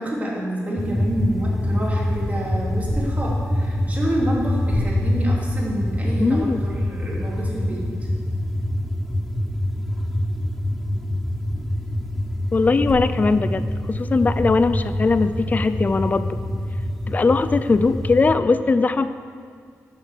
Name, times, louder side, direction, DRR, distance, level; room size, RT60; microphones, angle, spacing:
voice 1, 0.0-7.9, right 1 dB, 25° right, -4 dB, 3.2 m, -28 dB
sound 1, 0.8-18.4, left 1 dB, 5° left, 1.2 m, -25 dB
voice 2, 6.2-6.6 12.5-16.4 17.1-19.1, left 4 dB, 30° left, 12 dB, 0.5 m, -20 dB
12.5 x 7.1 x 6.7 m, 2.1 s
wide cardioid pair, 110°, 5 cm